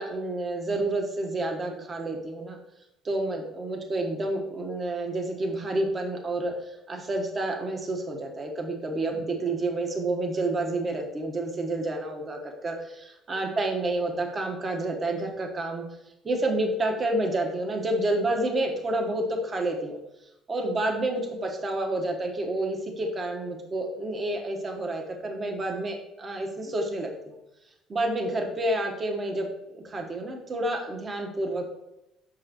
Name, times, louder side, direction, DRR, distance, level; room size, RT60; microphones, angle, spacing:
voice 1, 0.0-2.6 3.0-15.8 16.2-20.0 20.5-27.4 27.9-31.6, right 2 dB, 30° right, 3 dB, 1.1 m, -29 dB
7.5 x 5.5 x 2.9 m, 0.89 s
cardioid pair, 110°, 0 cm